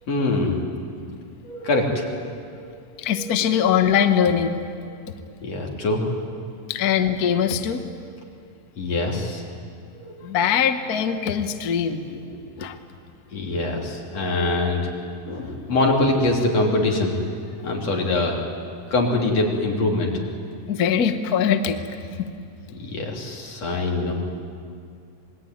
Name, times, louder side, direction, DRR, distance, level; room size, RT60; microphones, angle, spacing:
voice 1, 0.1-0.6 1.4-2.3 2.6-2.8 3.2-3.4 5.4-6.2 8.8-9.4 10.0-10.2 12.1-12.2 13.3-14.9 15.3-17.1 17.6-18.4 18.9-20.1 22.8-24.1, left 2 dB, 55° left, 0 dB, 4.2 m, -23 dB
voice 2, 3.0-4.6 5.0-5.1 6.7-7.8 10.2-12.0 12.6-12.8 20.7-22.3, left 8 dB, 80° left, 8 dB, 0.8 m, -22 dB
27.5 x 20.0 x 9.3 m, 2.3 s
omnidirectional pair, 3.5 m